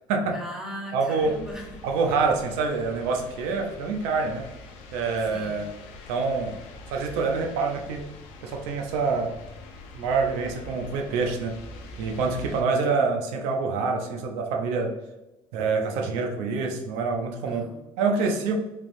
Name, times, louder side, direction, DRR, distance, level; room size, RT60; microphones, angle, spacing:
voice 1, 0.3-1.9 5.3-5.8 17.5-17.9, equal, 5° right, -3 dB, 0.9 m, -39 dB
voice 2, 0.9-1.3 1.8-4.5 4.9-5.7 6.1-6.6 6.9-8.1 8.4-9.3 10.0-11.6 12.0-14.9 15.5-17.6 18.0-18.5, right 4 dB, 90° right, 3 dB, 0.5 m, -26 dB
sound 1, 1.2-12.6, left 2 dB, 85° left, 0.6 m, -44 dB
3.3 x 3.0 x 2.6 m, 0.99 s
cardioid pair, 140°, 11 cm